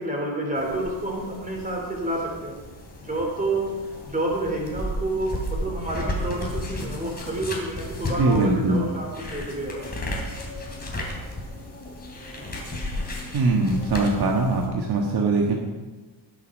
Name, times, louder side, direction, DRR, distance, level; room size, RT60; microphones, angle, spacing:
voice 1, 0.0-2.6 3.0-3.7 4.0-9.8, right 2 dB, 15° right, -1 dB, 4.0 m, -29 dB
sound 1, 0.5-14.7, left 1 dB, 20° left, 3.2 m, -34 dB
voice 2, 8.2-8.8 13.3-15.5, right 3 dB, 50° right, 0 dB, 1.7 m, -21 dB
20.5 x 8.3 x 5.4 m, 1.3 s
cardioid pair, 170°, 47 cm